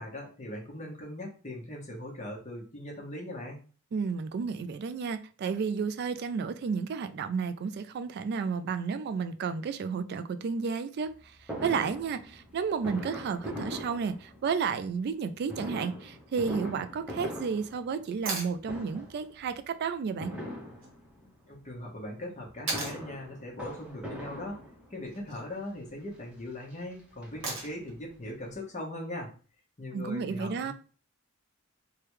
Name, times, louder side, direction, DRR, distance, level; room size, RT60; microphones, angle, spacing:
voice 1, 0.0-3.6 21.5-24.6 24.9-29.3 29.8-30.7, left 1 dB, 35° left, 1.0 m, -40 dB
voice 2, 3.9-20.3 29.9-30.7, right 5 dB, 55° right, 0.3 m, -32 dB
Fireworks, 11.5-14.7 15.5-18.4 18.6-19.3 20.2-21.3 22.4-25.1 25.9-26.0 26.3-26.4 26.7-27.9 28.3-28.4 28.5-28.6, equal, 5° right, 0.9 m, -41 dB
sound 1, 18.3-18.6 20.8-20.9 22.7-23.0 25.0-25.4 27.4-27.9 30.0-30.1, right 2 dB, 80° right, 1.2 m, -35 dB
3.3 x 2.2 x 3.0 m
head